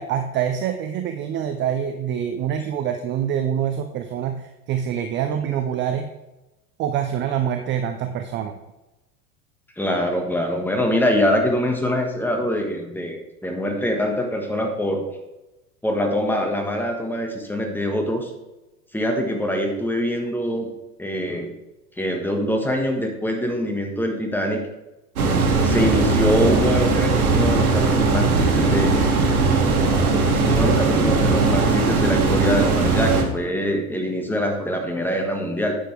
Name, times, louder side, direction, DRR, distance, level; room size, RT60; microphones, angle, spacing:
voice 1, 0.0-6.1 6.8-8.5, right 9 dB, 25° right, 7 dB, 0.5 m, -25 dB
voice 2, 9.8-15.1 15.8-18.3 18.9-20.7 21.0-21.5 22.0-24.6 25.6-29.2 30.4-35.8, equal, 5° left, 3 dB, 1.6 m, -24 dB
sound 1, 25.2-33.2, right 3 dB, 70° right, 1.6 m, -19 dB
9.8 x 7.1 x 3.4 m, 0.99 s
figure-of-eight pair, 85°, 44 cm